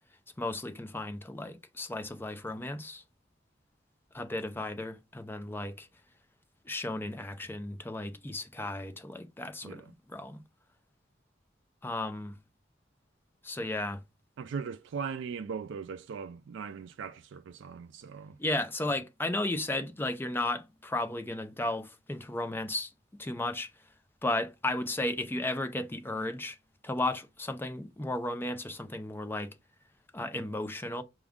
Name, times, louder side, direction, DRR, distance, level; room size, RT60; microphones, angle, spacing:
voice 1, 0.4-3.0 4.1-5.9 6.7-10.4 11.8-12.4 13.4-14.0 18.4-22.9 23.2-23.7 24.2-26.6 26.8-29.5 30.1-31.0, left 2 dB, 10° left, 0.5 m, -34 dB
voice 2, 14.4-18.4, right 6 dB, 65° right, 0.3 m, -39 dB
6.0 x 2.4 x 3.5 m
head